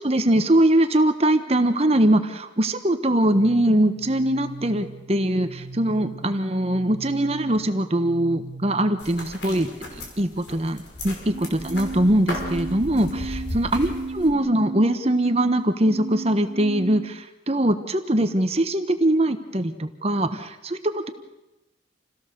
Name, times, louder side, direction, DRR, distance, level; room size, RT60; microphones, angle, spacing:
voice 1, 0.0-21.1, right 1 dB, 30° right, 9 dB, 1.2 m, -22 dB
sound 1, 3.3-9.2 11.3-17.2, right 3 dB, 65° right, 2.4 m, -37 dB
sound 2, 9.0-14.3, left 1 dB, 65° left, 5.3 m, -36 dB
28.5 x 17.0 x 6.8 m, 1.0 s
head